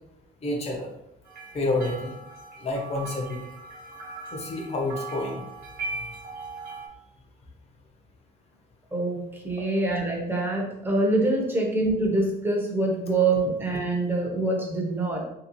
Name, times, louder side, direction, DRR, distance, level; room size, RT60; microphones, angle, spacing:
voice 1, 0.4-0.9 1.5-2.1 2.6-3.4 4.3-5.4, left 2 dB, 40° left, 1 dB, 0.9 m, -28 dB
sound 1, 1.2-6.9, right 3 dB, 60° right, 1.1 m, -39 dB
voice 2, 8.9-15.2, right 2 dB, 10° right, -1 dB, 0.9 m, -25 dB
3.1 x 2.9 x 3.0 m, 0.83 s
cardioid pair, 110°, 17 cm